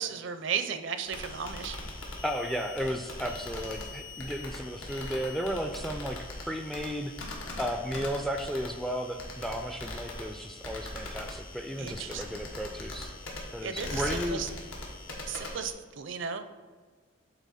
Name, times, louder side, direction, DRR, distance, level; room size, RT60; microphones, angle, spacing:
voice 1, 0.0-1.8 11.8-12.2 13.6-14.5 15.2-16.5, right 7 dB, 65° right, 9 dB, 0.5 m, -35 dB
sound 1, 1.0-15.7, left 2 dB, 80° left, 1.4 m, -41 dB
voice 2, 2.2-6.2 6.4-7.1 7.6-13.1 13.5-14.4, equal, ahead, 5 dB, 0.3 m, -34 dB
8.2 x 3.9 x 4.1 m, 1.4 s
head